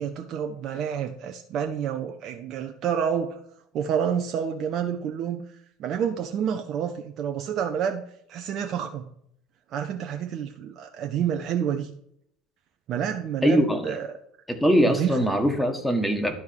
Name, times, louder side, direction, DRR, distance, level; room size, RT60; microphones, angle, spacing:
voice 1, 0.0-3.4 3.7-5.4 5.8-8.0 8.3-9.1 9.7-11.9 12.9-14.1 14.8-15.3, right 8 dB, 50° right, 5 dB, 0.7 m, -29 dB
voice 2, 13.4-13.9 14.5-16.4, equal, 5° left, 5 dB, 1.6 m, -22 dB
11.0 x 4.6 x 4.6 m, 0.70 s
figure-of-eight pair, 70°, 0 cm